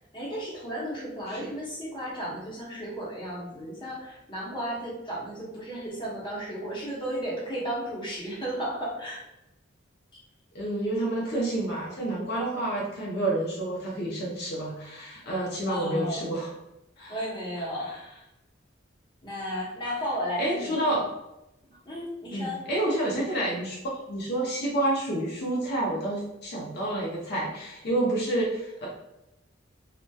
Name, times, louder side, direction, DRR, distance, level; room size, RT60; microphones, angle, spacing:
voice 1, 0.1-9.2 15.7-16.2 17.1-17.9 19.2-20.8 21.7-22.6, equal, 25° left, -5 dB, 0.7 m, -34 dB
voice 2, 10.5-16.5 17.0-17.3 17.6-18.0 20.4-21.1 22.3-28.9, right 1 dB, 55° left, -4 dB, 0.5 m, -29 dB
2.7 x 2.1 x 2.2 m, 0.90 s
head